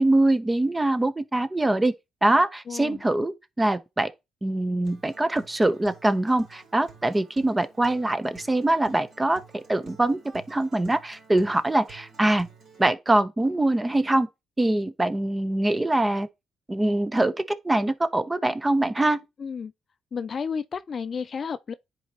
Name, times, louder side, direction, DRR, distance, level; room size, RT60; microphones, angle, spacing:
voice 1, 0.0-1.9 2.2-4.1 4.4-12.5 12.8-14.3 14.6-16.3 16.7-19.2, right 1 dB, 15° right, 0.7 m, -23 dB
voice 2, 2.7-3.0 19.4-19.7 20.1-21.7, left 6 dB, 45° left, 0.4 m, -32 dB
Acoustic guitar, 4.8-12.8, right 6 dB, 55° right, 3.7 m, -52 dB
10.0 x 4.1 x 2.8 m
cardioid pair, 90°, 0 cm